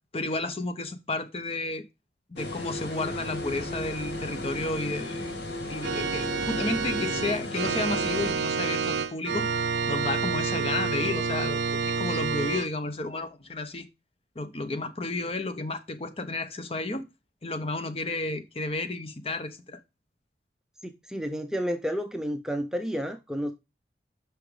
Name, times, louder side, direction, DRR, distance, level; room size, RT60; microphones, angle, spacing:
voice 1, 0.1-1.8 2.3-5.3 5.7-11.6 12.0-13.9 14.3-17.0 17.4-19.8, left 2 dB, 35° left, 0.9 m, -32 dB
sound 1, 2.4-8.3, left 1 dB, 75° left, 2.1 m, -35 dB
Organ, 5.8-12.7, right 5 dB, 70° right, 0.7 m, -28 dB
voice 2, 20.8-23.5, equal, 5° right, 0.6 m, -31 dB
5.9 x 5.8 x 4.9 m
head